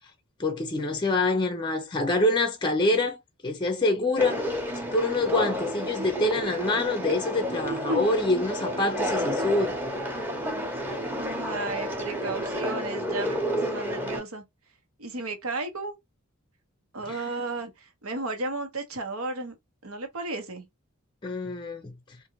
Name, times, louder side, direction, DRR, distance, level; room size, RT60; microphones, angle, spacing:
voice 1, 0.4-3.2 3.4-4.4 4.9-9.7 17.0-17.2 21.2-21.9, left 2 dB, 20° left, 0.5 m, -26 dB
Conversation, 4.2-14.2, equal, 10° right, 0.8 m, -31 dB
voice 2, 11.2-14.4 15.0-16.0 16.9-19.5 19.8-20.7, right 2 dB, 90° right, 1.2 m, -33 dB
3.8 x 2.5 x 2.9 m
head